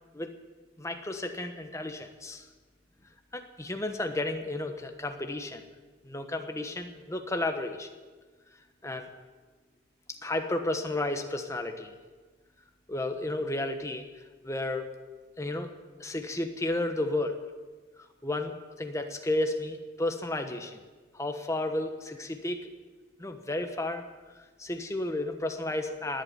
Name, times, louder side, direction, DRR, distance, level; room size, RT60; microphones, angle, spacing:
voice 1, 0.8-2.5 3.3-5.6 6.0-7.9 8.8-9.1 10.2-11.9 12.9-14.9 15.4-15.7 16.0-17.3 18.2-20.8 21.1-22.7 23.2-26.2, left 2 dB, 15° left, 6 dB, 1.2 m, -32 dB
19.5 x 8.3 x 8.9 m, 1.4 s
head